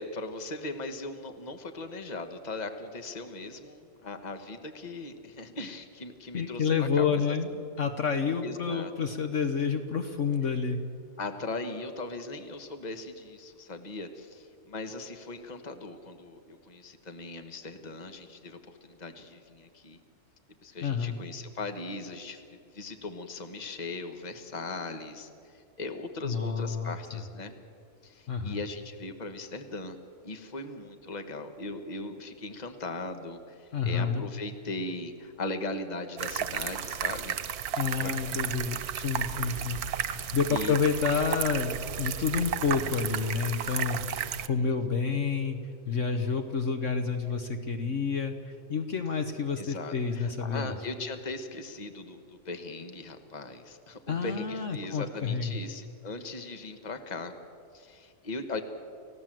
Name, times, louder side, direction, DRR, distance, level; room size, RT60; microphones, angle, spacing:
voice 1, 0.0-7.6 8.4-8.9 11.2-20.0 20.6-27.5 28.0-30.0 30.2-37.6 38.0-38.1 38.9-40.8 44.1-44.7 49.6-57.3 57.7-58.6, left 2 dB, 30° left, 7 dB, 1.5 m, -39 dB
voice 2, 6.3-7.5 7.8-10.8 20.8-21.2 26.2-27.2 28.3-28.6 33.7-34.2 37.8-45.6 45.9-50.7 54.1-55.6, left 5 dB, 55° left, 7 dB, 1.5 m, -29 dB
sound 1, 36.2-44.5, right 9 dB, 85° right, 1.3 m, -33 dB
29.5 x 15.5 x 7.7 m, 2.4 s
omnidirectional pair, 1.6 m